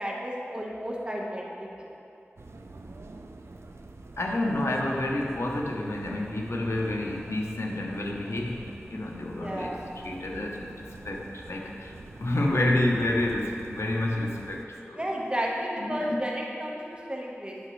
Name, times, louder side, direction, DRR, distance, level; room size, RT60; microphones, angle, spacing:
voice 1, 0.0-1.9 9.2-9.9 14.9-17.7, equal, 25° right, -3 dB, 1.2 m, -33 dB
sound 1, 2.4-14.6, right 2 dB, 75° right, 0.4 m, -46 dB
voice 2, 4.2-9.8 10.0-11.9 12.2-15.0 15.8-16.2, left 1 dB, 90° left, 0 dB, 0.8 m, -29 dB
9.5 x 6.1 x 3.1 m, 2.7 s
wide cardioid pair, 45°, 4 cm